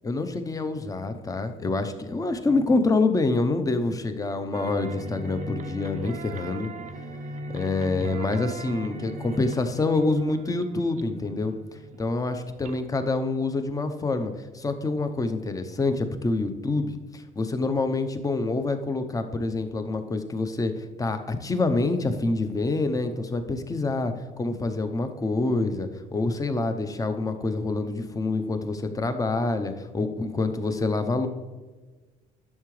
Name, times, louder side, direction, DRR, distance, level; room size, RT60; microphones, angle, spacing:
voice 1, 0.0-6.7 7.5-11.5 12.0-31.3, left 3 dB, 20° left, 8 dB, 0.8 m, -26 dB
sound 1, 4.5-13.5, right 1 dB, 45° right, 0.6 m, -39 dB
11.0 x 6.7 x 3.2 m, 1.3 s
cardioid pair, 110°, 17 cm